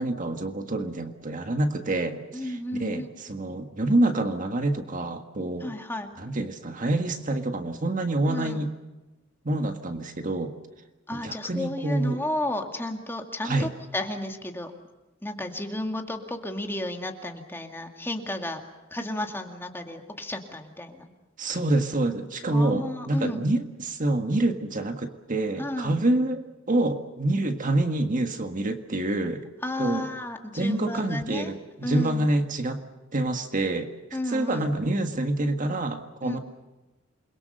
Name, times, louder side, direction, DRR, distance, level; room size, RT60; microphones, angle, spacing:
voice 1, 0.0-5.7 6.2-8.7 9.4-10.5 11.1-12.2 13.4-13.7 21.4-29.4 29.8-30.1 30.5-32.8 33.1-33.9 34.3-36.4, right 2 dB, 40° right, 6 dB, 1.7 m, -27 dB
voice 2, 2.3-3.1 5.6-6.1 8.3-8.6 11.1-14.7 15.2-18.6 18.9-21.1 22.5-23.5 25.6-26.0 29.6-31.5 31.8-32.3 34.1-34.7 36.2-36.4, left 1 dB, 10° left, 4 dB, 2.2 m, -32 dB
28.5 x 22.5 x 6.7 m, 1.1 s
head